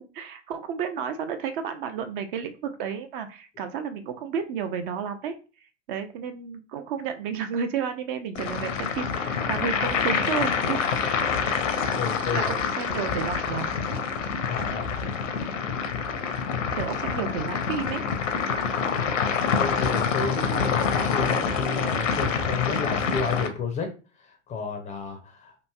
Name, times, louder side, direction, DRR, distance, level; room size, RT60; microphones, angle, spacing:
voice 1, 0.1-5.3 5.9-10.8 11.8-12.0 12.3-13.7 16.8-18.0, right 7 dB, 45° right, 8 dB, 0.4 m, -32 dB
sound 1, 8.4-23.5, left 6 dB, 75° left, 0.7 m, -26 dB
voice 2, 12.0-12.5 14.5-14.8 19.6-23.9 24.2-25.6, left 5 dB, 20° left, 4 dB, 0.4 m, -31 dB
3.0 x 2.5 x 2.3 m, 0.34 s
hypercardioid pair, 95°, 38 cm